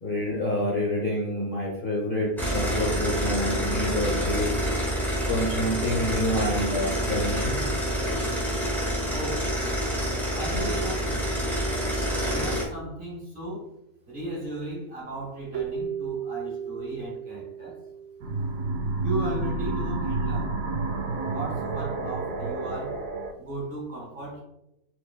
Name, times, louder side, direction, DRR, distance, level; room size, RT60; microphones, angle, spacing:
voice 1, 0.0-4.5 5.3-7.6, left 1 dB, 40° left, -5 dB, 1.0 m, -27 dB
sound 1, 2.4-12.6, equal, ahead, 1.2 m, -27 dB
voice 2, 9.1-9.5 10.3-11.3 12.2-13.7 14.1-17.8 19.0-20.6 21.3-23.0 23.4-24.4, right 1 dB, 35° right, -3 dB, 1.4 m, -36 dB
Keyboard (musical), 15.5-18.8, right 7 dB, 65° right, 0.9 m, -35 dB
sound 2, 18.2-23.3, right 3 dB, 80° right, 1.2 m, -29 dB
4.8 x 4.1 x 2.2 m, 0.84 s
omnidirectional pair, 1.7 m